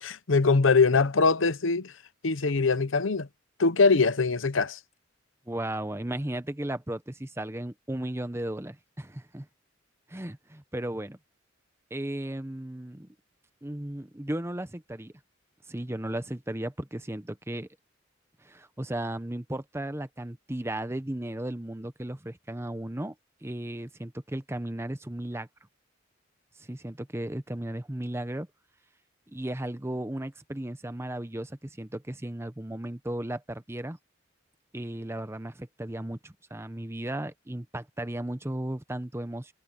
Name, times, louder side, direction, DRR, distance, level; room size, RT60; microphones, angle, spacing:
voice 1, 0.0-1.9 2.2-3.3 3.6-4.8, left 4 dB, 80° left, 0.9 m, -22 dB
voice 2, 5.5-9.5 10.1-11.2 11.9-13.1 13.6-15.1 15.7-17.7 18.4-23.1 23.4-25.5 26.6-28.5 29.3-34.0 34.7-39.5, right 1 dB, 15° right, 0.8 m, -35 dB
head